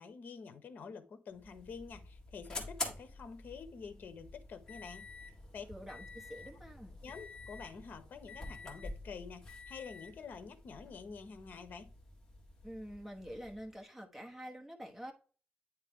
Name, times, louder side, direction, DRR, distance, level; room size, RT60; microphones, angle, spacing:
voice 1, 0.0-5.1 5.5-5.7 7.0-11.9, left 5 dB, 55° left, 1.0 m, -48 dB
sound 1, 1.3-13.7, left 2 dB, 15° left, 1.8 m, -48 dB
voice 2, 5.7-7.0 12.6-15.1, equal, 10° right, 1.1 m, -47 dB
9.3 x 3.2 x 3.7 m
wide cardioid pair, 150°, 4 cm